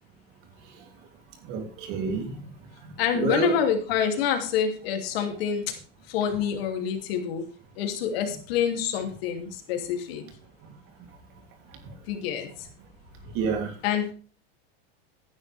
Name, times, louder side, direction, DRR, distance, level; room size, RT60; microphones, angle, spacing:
voice 1, 1.4-2.4 2.8-3.6 10.6-10.7 13.3-13.7, right 5 dB, 45° right, 5 dB, 3.1 m, -29 dB
voice 2, 3.0-5.7 6.1-7.4 7.8-10.2 12.1-12.5 13.8-14.1, left 8 dB, 70° left, 5 dB, 2.8 m, -27 dB
14.5 x 10.5 x 3.5 m, 0.39 s
supercardioid pair, 150°, 31 cm